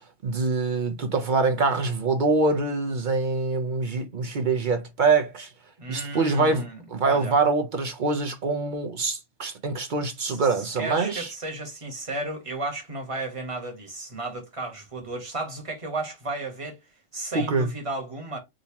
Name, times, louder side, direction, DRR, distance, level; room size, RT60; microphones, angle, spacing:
voice 1, 0.2-5.5 5.9-11.3 17.3-17.7, right 3 dB, 50° right, 0.7 m, -24 dB
voice 2, 5.8-7.4 10.3-16.8 17.1-18.4, right 2 dB, 30° right, 1.2 m, -34 dB
3.7 x 2.8 x 2.8 m
omnidirectional pair, 1.2 m